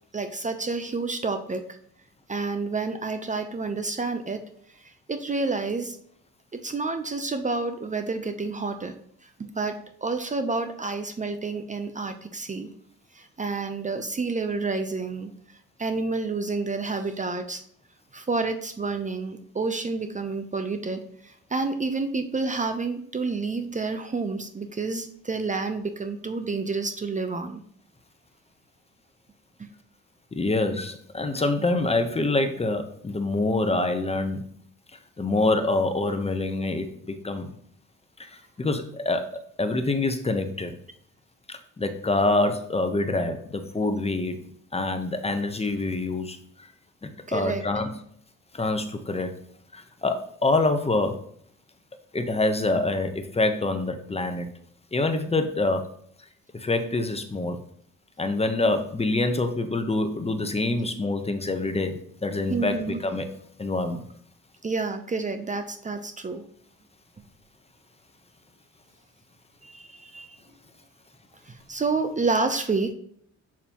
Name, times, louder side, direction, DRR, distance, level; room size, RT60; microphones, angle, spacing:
voice 1, 0.1-1.8 2.3-4.4 4.8-6.0 6.5-8.9 9.2-12.7 13.1-15.3 15.8-17.6 18.1-27.6 47.3-47.7 62.5-63.0 64.6-66.4 69.6-70.4 71.5-72.9, right 3 dB, 25° right, 8 dB, 0.7 m, -29 dB
voice 2, 30.3-34.4 35.2-37.5 38.2-40.7 41.5-44.4 44.7-46.7 47.0-48.0 48.5-49.3 49.7-51.2 52.1-54.5 54.9-55.9 56.5-57.6 58.2-63.3 63.6-64.0, left 2 dB, 20° left, 7 dB, 0.9 m, -26 dB
7.2 x 6.7 x 3.0 m, 0.64 s
cardioid pair, 90°, 30 cm